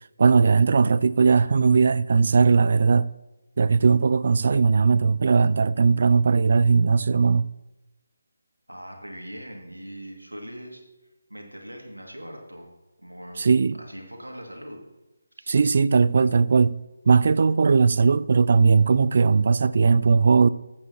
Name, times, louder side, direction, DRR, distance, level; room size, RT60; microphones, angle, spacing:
voice 1, 0.2-3.1 3.6-7.5 13.4-13.8 15.5-16.8 17.1-20.5, right 5 dB, 45° right, 0.3 m, -19 dB
voice 2, 8.7-10.8 11.3-12.7 13.0-14.8 15.4-15.5, equal, 90° right, 2.2 m, -41 dB
14.5 x 8.5 x 2.9 m
figure-of-eight pair, 155°, 0 cm